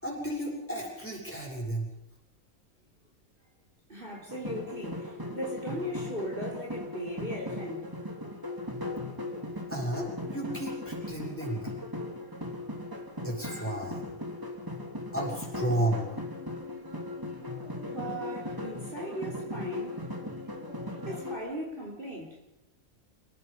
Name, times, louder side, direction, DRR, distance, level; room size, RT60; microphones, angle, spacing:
voice 1, 0.0-1.9 4.0-4.1 9.7-11.7 13.2-14.1 15.1-16.0, right 1 dB, 10° left, -2 dB, 7.1 m, -33 dB
voice 2, 3.9-7.9 12.1-12.3 13.0-13.1 17.8-20.6 21.0-22.4, right 1 dB, 35° right, -2 dB, 4.0 m, -38 dB
sound 1, 4.3-21.3, left 1 dB, 15° right, 3.0 m, -38 dB
29.5 x 17.5 x 5.4 m, 0.93 s
omnidirectional pair, 1.5 m